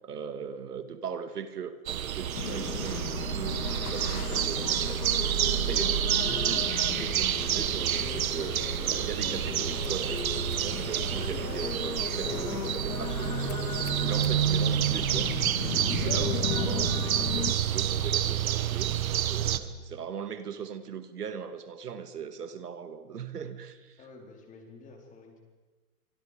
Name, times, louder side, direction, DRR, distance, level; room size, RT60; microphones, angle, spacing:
voice 1, 0.0-5.1 5.5-24.0, right 7 dB, 85° right, 10 dB, 2.3 m, -39 dB
sound 1, 1.9-19.6, right 10 dB, 65° right, 1.6 m, -29 dB
sound 2, 2.3-17.5, left 8 dB, 75° left, 2.0 m, -36 dB
voice 2, 24.0-25.4, left 3 dB, 15° left, 1 dB, 4.3 m, -50 dB
26.0 x 25.0 x 5.1 m, 1.3 s
hypercardioid pair, 145°, 45 cm